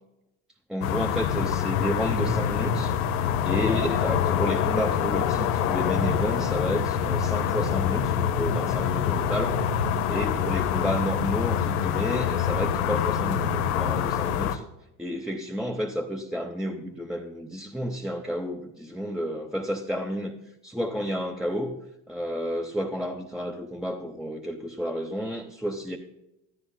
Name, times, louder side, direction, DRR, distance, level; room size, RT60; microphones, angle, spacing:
voice 1, 0.7-3.0 3.4-9.6 10.1-14.6 15.0-20.3 20.6-21.8 22.1-26.0, equal, ahead, 2 dB, 0.8 m, -31 dB
sound 1, 0.8-14.6, left 8 dB, 90° left, 0.9 m, -25 dB
14.0 x 13.5 x 2.2 m, 0.89 s
supercardioid pair, 85°, 43 cm